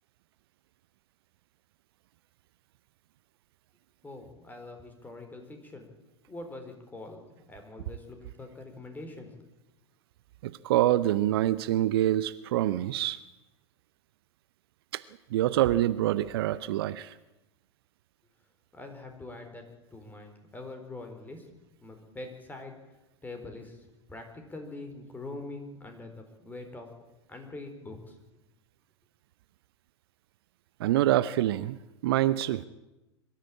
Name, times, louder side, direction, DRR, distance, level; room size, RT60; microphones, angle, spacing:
voice 1, 4.0-5.9 6.3-9.3 18.7-19.6 19.9-21.5 21.8-22.7 23.2-26.9 27.3-28.2, left 2 dB, 10° left, 5 dB, 4.2 m, -44 dB
voice 2, 10.4-13.2 14.9-15.0 15.3-17.1 30.8-31.8 32.0-32.6, right 14 dB, 55° right, 17 dB, 0.7 m, -26 dB
23.0 x 13.5 x 8.7 m, 1.0 s
figure-of-eight pair, 90°, 15 cm